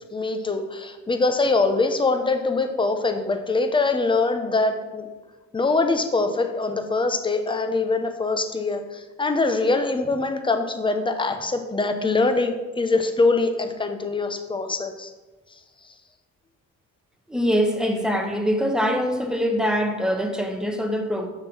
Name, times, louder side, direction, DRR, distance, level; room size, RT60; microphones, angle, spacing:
voice 1, 0.1-5.1 5.5-15.1, left 3 dB, 15° left, 6 dB, 0.7 m, -23 dB
voice 2, 17.3-21.3, equal, ahead, 4 dB, 1.0 m, -23 dB
6.6 x 3.7 x 5.9 m, 1.2 s
cardioid pair, 90°, 30 cm